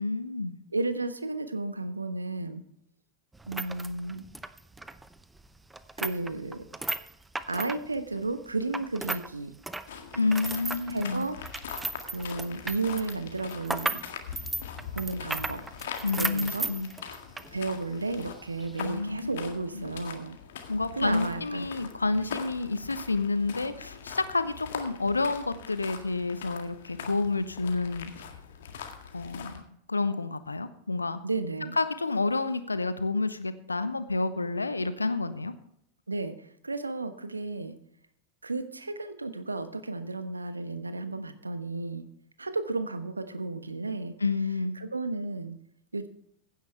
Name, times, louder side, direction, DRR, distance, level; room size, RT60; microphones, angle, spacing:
voice 1, 0.0-0.6 10.1-11.2 16.0-16.9 18.8-19.3 19.7-19.8 20.7-28.1 29.1-29.6 29.9-31.2 31.8-35.5 44.2-44.8, left 3 dB, 80° left, 13 dB, 0.9 m, -29 dB
voice 2, 0.7-2.6 3.5-4.2 6.0-6.6 7.5-9.5 10.9-11.4 12.0-14.0 14.9-15.6 16.2-16.7 17.5-20.4 21.0-21.7 31.2-31.8 36.1-37.8 38.4-42.1 42.4-44.1 44.8-45.5 45.9-46.1, right 3 dB, 80° right, 11 dB, 1.2 m, -33 dB
sound 1, 3.3-9.3 9.6-17.5 17.8-17.9 18.6-18.8, right 2 dB, 10° right, 0.7 m, -35 dB
sound 2, 9.9-29.6, left 7 dB, 60° left, 1.8 m, -43 dB
16.0 x 10.5 x 3.4 m, 0.72 s
figure-of-eight pair, 90°, 0 cm